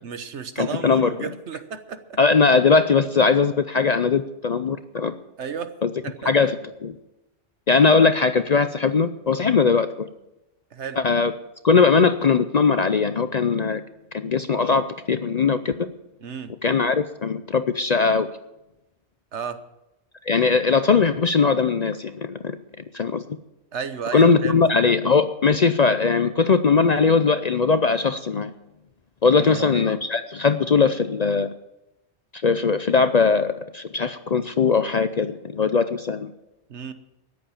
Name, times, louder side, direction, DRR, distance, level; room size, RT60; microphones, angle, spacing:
voice 1, 0.0-2.2 5.4-5.7 6.0-6.3 10.7-11.0 16.2-16.5 19.3-19.6 23.7-24.6 29.3-29.8 36.7-36.9, right 6 dB, 75° right, 10 dB, 1.3 m, -33 dB
voice 2, 0.6-1.3 2.2-5.1 5.8-5.9 6.3-6.5 6.8-6.9 7.7-10.1 11.0-11.3 11.6-13.8 14.1-15.9 16.6-18.3 20.3-22.6 22.9-23.2 24.1-28.5 29.2-31.5 32.4-36.3, left 5 dB, 45° left, 10 dB, 0.5 m, -20 dB
13.5 x 10.5 x 7.1 m, 0.93 s
omnidirectional pair, 1.2 m